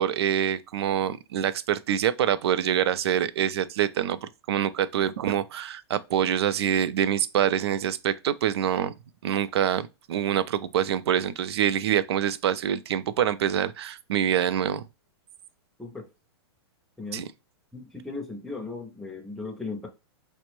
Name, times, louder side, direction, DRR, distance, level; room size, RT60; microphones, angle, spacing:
voice 1, 0.0-8.9 9.2-14.8 17.1-17.3, right 10 dB, 75° right, 0.4 m, -25 dB
voice 2, 17.7-19.9, left 3 dB, ahead, 0.4 m, -37 dB
4.3 x 2.0 x 3.0 m
supercardioid pair, 170°, 14 cm